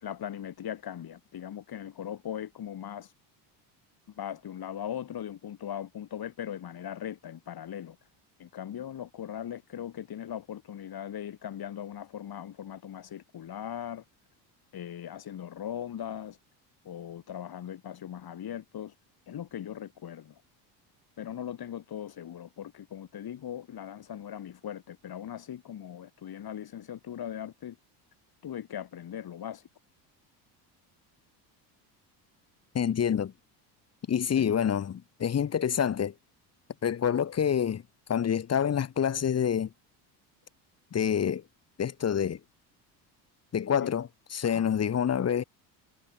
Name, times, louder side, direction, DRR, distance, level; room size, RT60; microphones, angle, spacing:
voice 1, 0.0-3.1 4.2-8.0 8.4-14.0 14.7-16.4 16.9-18.9 19.3-20.3 21.2-27.8 28.4-29.6 34.4-34.5 43.8-43.9 44.4-44.7, left 10 dB, 50° left, 5.4 m, -39 dB
voice 2, 32.7-33.3 34.1-36.1 36.8-37.8 38.1-39.7 40.9-41.4 41.8-42.4 43.5-45.4, left 8 dB, 30° left, 1.1 m, -27 dB
supercardioid pair, 85°, 48 cm